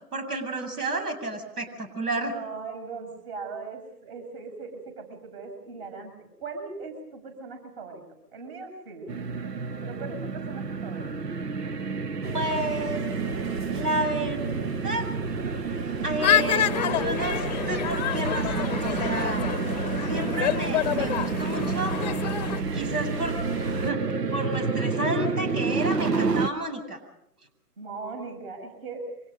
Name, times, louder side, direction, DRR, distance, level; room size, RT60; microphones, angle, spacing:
voice 1, 0.1-2.3 10.1-10.2 12.3-13.0 13.7-15.1 15.7-15.8 16.0-19.4 20.0-22.0 22.7-24.0 24.3-27.0, right 1 dB, 70° right, 7 dB, 8.0 m, -31 dB
voice 2, 2.3-8.0 8.3-9.1 9.8-11.1 27.8-29.0, right 4 dB, 40° right, 5 dB, 7.4 m, -39 dB
sound 1, 9.1-26.5, right 5 dB, 90° right, 1.2 m, -30 dB
sound 2, 12.2-23.9, right 2 dB, 55° right, 3.0 m, -36 dB
sound 3, 16.2-22.6, left 10 dB, 25° left, 0.8 m, -28 dB
30.0 x 26.0 x 5.3 m, 0.74 s
figure-of-eight pair, 140°, 47 cm